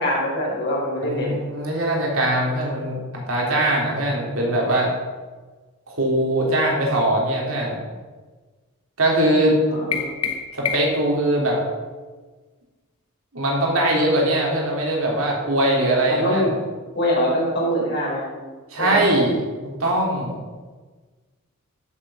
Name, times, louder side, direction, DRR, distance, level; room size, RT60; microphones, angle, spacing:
voice 1, 0.0-1.4 9.7-10.1 16.1-16.5 16.9-18.3 18.8-19.0, equal, 50° left, -4 dB, 4.7 m, -23 dB
voice 2, 1.0-4.9 5.9-7.8 9.0-9.6 10.5-11.6 13.3-16.5 18.7-19.4 19.6-20.4, right 1 dB, 65° right, -2 dB, 3.6 m, -21 dB
sound 1, 9.9-11.1, left 7 dB, 75° left, 1.2 m, -27 dB
13.5 x 7.7 x 5.7 m, 1.3 s
head